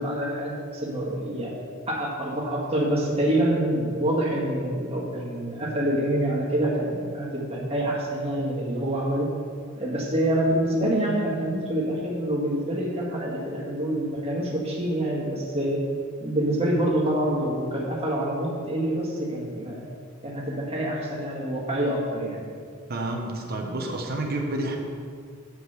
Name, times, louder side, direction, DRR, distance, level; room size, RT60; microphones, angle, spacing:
voice 1, 0.0-1.5 1.9-9.3 9.8-15.8 16.2-19.8 20.2-22.4, right 1 dB, 30° right, -4 dB, 1.7 m, -26 dB
voice 2, 22.9-24.8, right 1 dB, 50° right, 1 dB, 0.9 m, -29 dB
7.8 x 5.1 x 6.6 m, 2.1 s
head